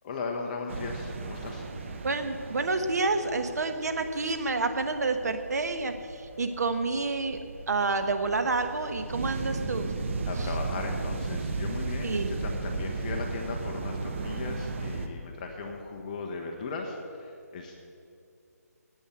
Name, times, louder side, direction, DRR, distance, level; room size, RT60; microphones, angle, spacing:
voice 1, 0.0-1.7 10.3-17.8, left 4 dB, 25° left, 2 dB, 1.0 m, -37 dB
sound 1, 0.7-15.1, right 3 dB, 45° right, 1.1 m, -36 dB
voice 2, 2.0-5.9 6.4-7.4 7.7-9.9 10.4-10.5 12.0-12.4, right 3 dB, 70° right, 7 dB, 1.3 m, -29 dB
10.5 x 8.8 x 8.2 m, 2.5 s
hypercardioid pair, 160°, 9 cm